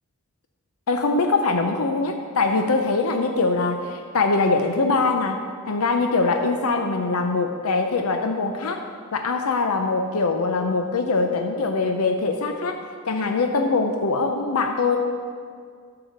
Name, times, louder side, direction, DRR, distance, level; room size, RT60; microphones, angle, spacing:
voice 1, 0.9-8.9 9.1-15.0, left 3 dB, 85° left, 4 dB, 0.6 m, -23 dB
11.5 x 4.8 x 6.5 m, 2.1 s
head